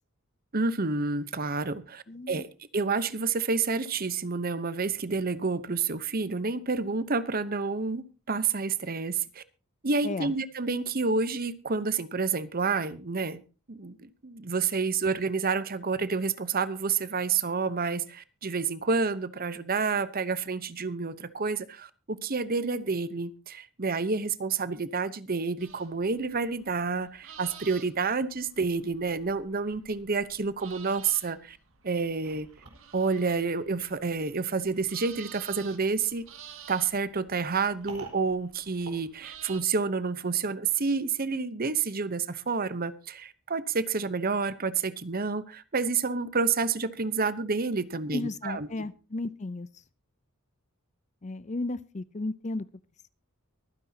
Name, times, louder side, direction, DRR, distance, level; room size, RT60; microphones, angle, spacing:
voice 1, 0.5-2.5 2.7-9.4 9.8-13.4 13.7-31.6 31.8-32.5 32.9-36.2 36.7-48.9, right 4 dB, 45° right, 15 dB, 0.9 m, -29 dB
voice 2, 2.1-2.4 10.0-10.3 48.1-49.7 51.2-52.7, left 2 dB, 35° left, 18 dB, 0.6 m, -34 dB
sound 1, 25.6-39.6, right 8 dB, 65° right, 2.2 m, -51 dB
sound 2, 32.2-39.9, right 3 dB, 85° right, 4.3 m, -51 dB
24.0 x 9.8 x 2.8 m, 0.32 s
head